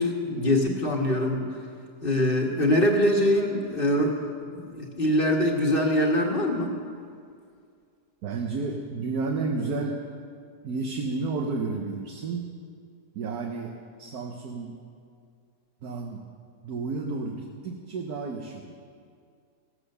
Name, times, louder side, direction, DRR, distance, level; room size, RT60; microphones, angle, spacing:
voice 1, 0.0-1.5 2.0-4.2 4.5-6.8, left 1 dB, 35° left, 0 dB, 1.5 m, -23 dB
voice 2, 8.2-10.0 10.6-12.5 13.1-14.8 15.8-16.2 16.6-18.7, right 3 dB, 70° right, 2 dB, 1.4 m, -31 dB
17.0 x 8.2 x 6.6 m, 2.2 s
omnidirectional pair, 1.8 m